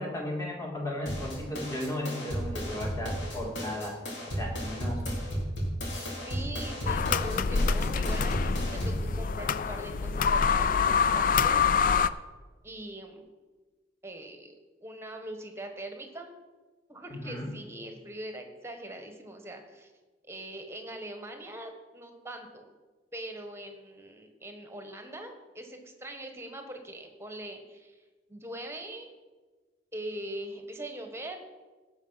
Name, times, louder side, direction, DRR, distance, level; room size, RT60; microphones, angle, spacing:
voice 1, 0.0-4.0 4.3-5.0 17.2-17.5, left 1 dB, 20° left, -1 dB, 2.6 m, -35 dB
sound 1, 1.1-9.1, equal, 80° left, 4.1 m, -34 dB
voice 2, 6.2-12.0 12.6-13.3 14.0-14.5 14.8-16.3 16.9-19.9 20.3-22.6 23.1-28.0 28.3-29.1 29.9-31.6, right 1 dB, 15° right, 5 dB, 1.3 m, -42 dB
sound 2, 6.9-12.1, left 5 dB, 50° left, 0.4 m, -26 dB
17.5 x 6.0 x 5.7 m, 1.3 s
head